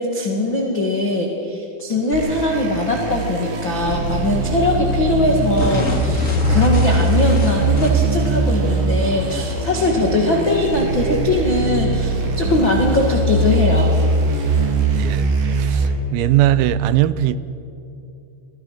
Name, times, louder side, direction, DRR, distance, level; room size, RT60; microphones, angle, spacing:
voice 1, 0.0-14.0, left 2 dB, 75° left, 0 dB, 1.1 m, -21 dB
sound 1, 2.1-15.9, right 2 dB, 70° right, 5.0 m, -21 dB
sound 2, 5.6-8.2, left 1 dB, 35° left, 1.3 m, -25 dB
voice 2, 14.9-17.4, right 13 dB, 90° right, 15 dB, 3.5 m, -19 dB
28.5 x 21.5 x 5.8 m, 2.7 s
omnidirectional pair, 6.0 m